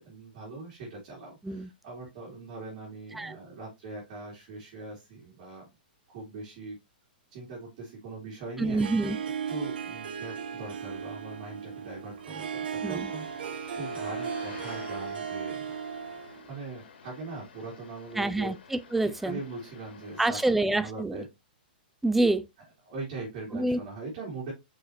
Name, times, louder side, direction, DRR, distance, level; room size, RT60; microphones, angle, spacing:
voice 1, 0.0-5.7 6.1-6.8 7.3-8.8 9.5-15.7 16.5-18.5 19.2-21.3 22.9-24.5, right 3 dB, 40° right, 2.9 m, -41 dB
voice 2, 8.6-9.2 12.8-13.1 18.2-19.4 20.2-21.2 22.0-22.5 23.5-23.8, right 2 dB, 5° right, 0.3 m, -27 dB
Harp, 8.6-16.5, right 7 dB, 70° right, 1.0 m, -36 dB
sound 1, 12.9-20.5, left 6 dB, 80° left, 2.0 m, -50 dB
6.6 x 4.9 x 3.0 m
hypercardioid pair, 160°, 5 cm